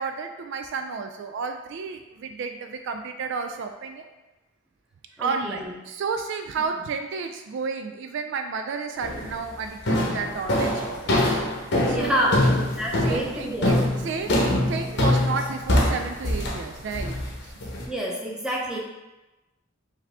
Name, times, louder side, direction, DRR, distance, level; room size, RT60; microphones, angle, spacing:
voice 1, 0.0-4.1 5.2-11.1 11.8-12.7 13.0-13.8 14.0-17.5, right 5 dB, 65° right, 6 dB, 0.3 m, -32 dB
voice 2, 5.2-5.7 6.7-6.8 11.8-12.4 12.8-13.8 14.2-14.4 17.9-18.8, equal, 5° right, -4 dB, 0.7 m, -28 dB
sound 1, 9.0-9.4 9.9-17.8, left 1 dB, 65° left, 0.8 m, -24 dB
4.9 x 2.7 x 3.4 m, 1.1 s
head